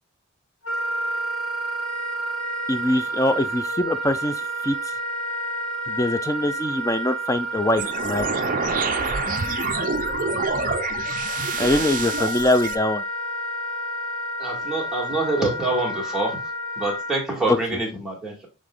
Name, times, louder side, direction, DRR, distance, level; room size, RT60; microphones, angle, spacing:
Wind instrument woodwind instrument, 0.6-17.2, equal, 65° left, 1.6 m, -30 dB
voice 1, 2.7-4.8 5.9-8.3 11.6-13.0 17.5-17.6, left 1 dB, 15° left, 0.4 m, -23 dB
sound 1, 7.8-12.8, right 5 dB, 35° right, 0.5 m, -27 dB
voice 2, 14.4-16.4 16.8-18.5, right 2 dB, ahead, 2.0 m, -26 dB
7.0 x 3.7 x 3.7 m
head